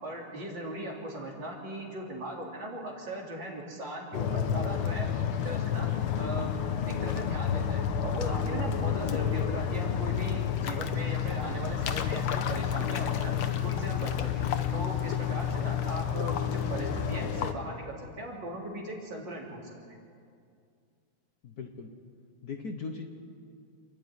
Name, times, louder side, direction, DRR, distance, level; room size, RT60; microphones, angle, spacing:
voice 1, 0.0-5.1 5.4-5.9 6.2-6.5 6.9-13.3 13.6-14.4 14.7-20.0, right 1 dB, 55° right, -2 dB, 3.9 m, -39 dB
sound 1, 4.1-17.5, left 8 dB, 75° left, 1.8 m, -30 dB
voice 2, 9.1-9.4 21.4-21.9 22.4-23.1, left 5 dB, 50° left, 4 dB, 1.5 m, -38 dB
28.0 x 11.5 x 9.5 m, 2.3 s
omnidirectional pair, 2.4 m